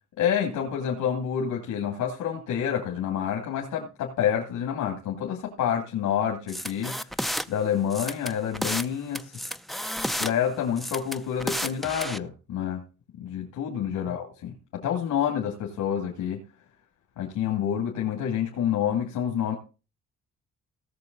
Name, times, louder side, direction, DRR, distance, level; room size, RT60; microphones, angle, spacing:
voice 1, 0.2-7.0 7.5-9.4 10.2-12.8 13.2-16.4 17.2-19.6, left 9 dB, 80° left, 0 dB, 2.4 m, -28 dB
sound 1, 6.5-7.5 7.9-8.9 9.2-10.3 10.8-12.2, equal, ahead, 0.5 m, -31 dB
17.5 x 6.5 x 4.0 m, 0.33 s
cardioid pair, 90°, 30 cm